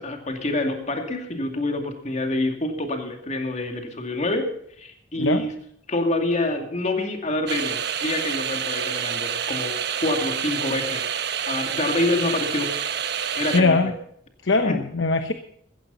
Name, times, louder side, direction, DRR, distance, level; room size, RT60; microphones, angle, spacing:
voice 1, 0.0-4.5 4.8-5.5 5.9-11.0 11.5-12.7 13.3-13.9 14.6-14.8, left 2 dB, 40° left, 4 dB, 2.4 m, -26 dB
sound 1, 7.5-13.6, right 8 dB, 65° right, 1.1 m, -28 dB
voice 2, 13.5-13.9 14.4-15.3, left 3 dB, 90° left, 8 dB, 1.0 m, -21 dB
15.5 x 14.5 x 4.0 m, 0.69 s
head